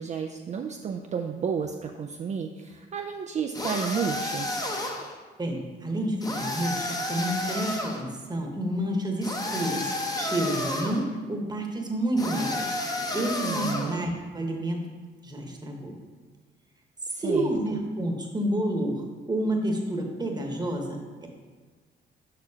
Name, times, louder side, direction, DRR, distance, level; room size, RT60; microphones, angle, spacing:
voice 1, 0.0-4.6 13.4-14.1 17.1-17.5, right 6 dB, 35° right, 3 dB, 0.4 m, -32 dB
sound 1, 3.5-5.1 6.2-8.0 9.2-11.0 12.2-14.0, left 1 dB, 20° left, 0.8 m, -31 dB
voice 2, 5.4-9.9 10.1-12.7 13.1-14.8 15.2-15.9 17.2-21.3, right 1 dB, 20° right, 2 dB, 1.0 m, -29 dB
6.7 x 5.7 x 2.8 m, 1.4 s
cardioid pair, 90°, 20 cm